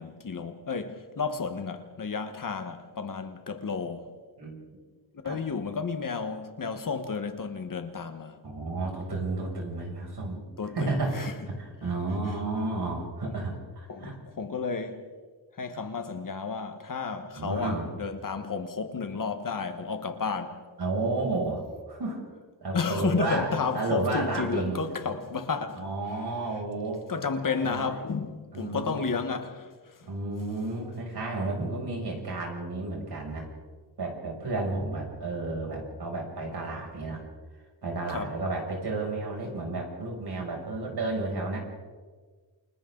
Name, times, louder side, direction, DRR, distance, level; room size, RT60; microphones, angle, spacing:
voice 1, 0.0-4.2 5.2-8.4 10.6-11.3 12.3-12.4 13.9-15.0 15.6-20.6 22.7-26.2 27.1-30.1 38.1-38.3, left 5 dB, 45° left, 1.5 m, -32 dB
voice 2, 8.4-10.4 10.7-14.2 17.3-17.9 20.8-21.6 21.9-22.2 22.6-23.5 23.7-24.8 25.8-27.9 28.5-29.2 30.1-33.5 34.0-37.2 37.8-41.6, right 2 dB, 55° right, 7.1 m, -32 dB
29.0 x 27.5 x 4.0 m
wide cardioid pair, 145°, 46 cm